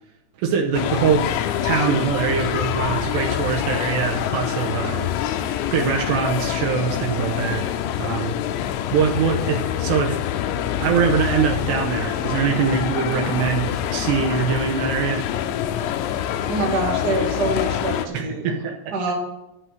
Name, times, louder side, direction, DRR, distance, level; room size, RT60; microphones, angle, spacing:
voice 1, 0.4-1.3 1.6-5.1 5.7-8.3 8.9-10.2 10.8-15.2 18.1-18.9, right 6 dB, 75° right, 1 dB, 2.8 m, -23 dB
sound 1, 0.7-18.1, left 10 dB, 85° left, 3.0 m, -25 dB
voice 2, 16.5-18.5 18.9-19.1, right 2 dB, 45° right, -1 dB, 1.3 m, -25 dB
12.5 x 6.1 x 6.5 m, 0.94 s
omnidirectional pair, 5.5 m